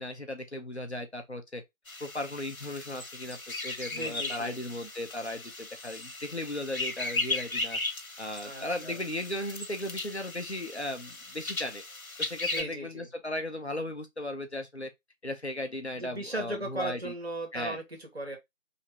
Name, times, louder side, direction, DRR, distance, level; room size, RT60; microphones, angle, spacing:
voice 1, 0.0-1.6 2.0-3.4 3.6-7.8 8.2-11.8 12.2-14.9 15.2-17.1 17.5-17.8, left 1 dB, 55° left, 0.9 m, -36 dB
sound 1, 1.9-12.6, left 2 dB, 90° left, 1.1 m, -37 dB
voice 2, 3.9-4.5 8.4-9.0 12.5-13.1 15.9-18.4, right 1 dB, 50° right, 1.6 m, -37 dB
3.1 x 3.0 x 4.3 m
figure-of-eight pair, 175°, 41 cm